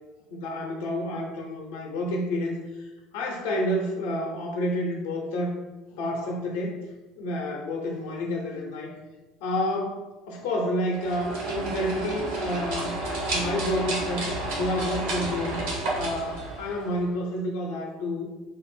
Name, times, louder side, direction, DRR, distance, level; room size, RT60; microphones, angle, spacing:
voice 1, 0.3-5.6 5.9-6.8 7.2-8.9 9.4-13.0 13.3-15.6 16.0-18.3, left 1 dB, 75° left, 0 dB, 0.6 m, -29 dB
sound 1, 10.9-17.1, right 2 dB, 80° right, 1.1 m, -31 dB
3.8 x 2.1 x 4.0 m, 1.1 s
hypercardioid pair, 80°, 0 cm